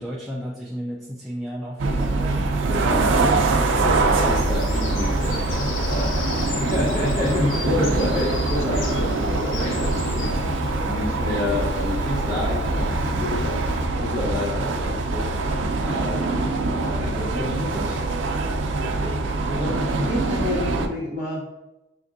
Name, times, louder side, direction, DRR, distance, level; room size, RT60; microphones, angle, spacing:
voice 1, 0.0-3.2 3.5-3.8, equal, ahead, -6 dB, 0.4 m, -34 dB
sound 1, 1.8-20.9, right 3 dB, 75° right, 0.4 m, -24 dB
voice 2, 2.7-10.4 10.8-13.6 14.0-15.3 15.8-16.5 16.8-18.0 18.8-19.2 19.4-21.5, left 1 dB, 35° left, -9 dB, 1.1 m, -28 dB
Bird vocalization bird call bird song, 3.8-13.9, left 1 dB, 85° left, 0.5 m, -30 dB
5.9 x 2.6 x 2.6 m, 0.92 s
head